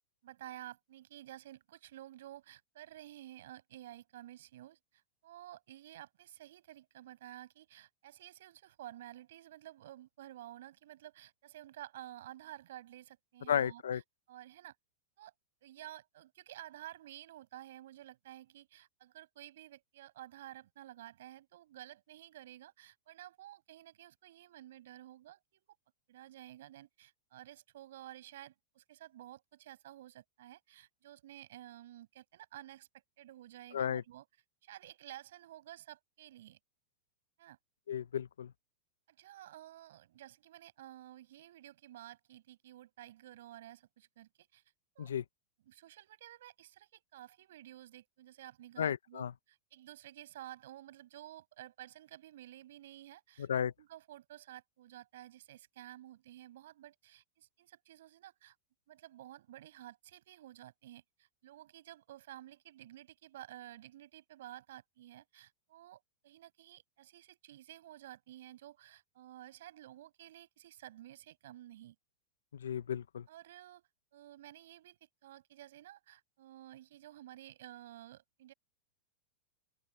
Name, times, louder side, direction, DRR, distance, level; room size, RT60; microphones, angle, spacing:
voice 1, 0.2-14.0 14.3-14.7 15.2-15.3 15.6-25.7 26.1-32.9 33.2-34.3 34.6-36.6 37.4-37.6 39.1-44.6 45.0-45.1 45.7-53.5 53.8-58.6 58.9-72.0 73.3-73.8 74.1-78.5, right 13 dB, 75° right, 5.7 m, -52 dB
voice 2, 13.5-14.0 33.7-34.0 37.9-38.5 45.0-45.2 48.8-49.3 53.4-53.7 72.5-73.2, left 8 dB, 90° left, 0.8 m, -34 dB
open air
hypercardioid pair, 125°, 0 cm